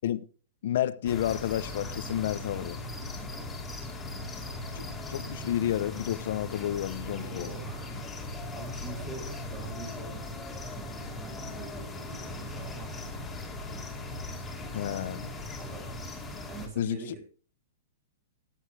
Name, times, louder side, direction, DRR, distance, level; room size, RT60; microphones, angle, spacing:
voice 1, 0.6-2.8 4.7-7.5 14.7-15.3 16.8-17.0, left 11 dB, 60° left, 0.7 m, -30 dB
sound 1, 1.1-16.7, left 2 dB, 10° left, 2.3 m, -39 dB
voice 2, 3.1-3.5 7.1-13.1 15.6-16.1 16.5-17.2, right 3 dB, 30° right, 3.4 m, -45 dB
14.5 x 10.0 x 3.4 m
hypercardioid pair, 160°, 0 cm